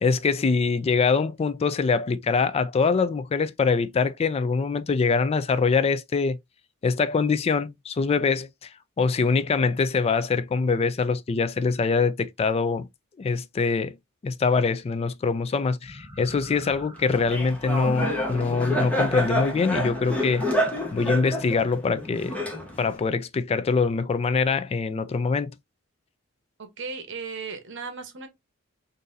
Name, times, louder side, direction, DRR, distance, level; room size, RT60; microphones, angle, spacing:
voice 1, 0.0-6.4 6.8-8.5 9.0-12.9 13.2-13.9 14.2-20.4 20.9-22.3 22.8-25.5, left 4 dB, 30° left, 0.3 m, -24 dB
sound 1, 15.8-23.0, equal, 15° right, 2.1 m, -46 dB
Laughter, 17.1-23.0, left 1 dB, 5° left, 0.9 m, -28 dB
voice 2, 26.6-28.3, right 4 dB, 60° right, 0.9 m, -36 dB
3.9 x 2.6 x 2.6 m
head